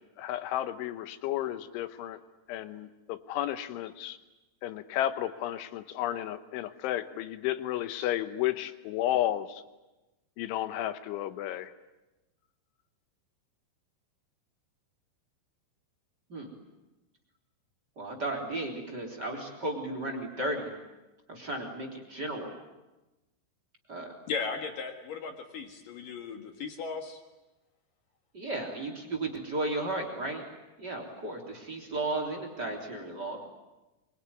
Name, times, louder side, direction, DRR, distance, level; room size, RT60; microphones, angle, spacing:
voice 1, 0.0-2.2 2.5-4.2 4.6-9.6 10.4-11.8, left 13 dB, 75° left, 11 dB, 3.3 m, -32 dB
voice 2, 18.0-20.7 21.3-22.5 23.9-24.1 28.3-30.4 30.8-33.4, right 2 dB, 25° right, 3 dB, 3.2 m, -34 dB
voice 3, 24.3-27.2, left 5 dB, 55° left, 5 dB, 2.7 m, -36 dB
24.5 x 23.5 x 9.6 m, 1.1 s
omnidirectional pair, 5.7 m